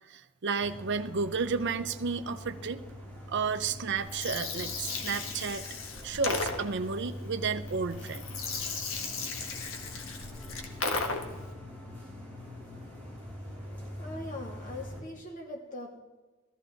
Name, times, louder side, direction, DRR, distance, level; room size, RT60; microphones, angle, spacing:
voice 1, 0.1-2.8 3.3-5.7 6.0-8.2, right 5 dB, 60° right, 9 dB, 0.6 m, -32 dB
sound 1, 0.6-15.0, left 1 dB, 10° left, 4.0 m, -44 dB
Gurgling, 4.0-11.5, left 4 dB, 70° left, 1.6 m, -36 dB
voice 2, 14.0-16.0, left 1 dB, 40° left, 1 dB, 2.5 m, -41 dB
14.5 x 14.0 x 3.9 m, 1.2 s
head